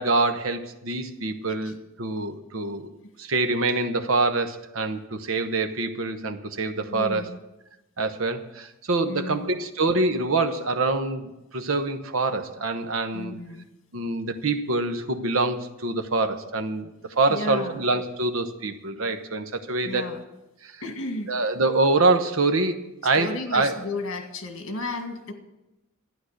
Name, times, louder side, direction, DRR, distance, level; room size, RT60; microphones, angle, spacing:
voice 1, 0.0-2.9 3.2-7.3 8.0-13.3 13.9-20.0 20.6-20.7 21.3-23.8, right 3 dB, 70° right, 8 dB, 1.1 m, -25 dB
voice 2, 6.8-7.4 9.0-9.6 13.1-13.7 17.3-17.8 19.8-20.2 20.8-21.3 23.0-25.3, left 2 dB, 65° left, 5 dB, 1.9 m, -34 dB
12.5 x 10.0 x 6.5 m, 0.96 s
head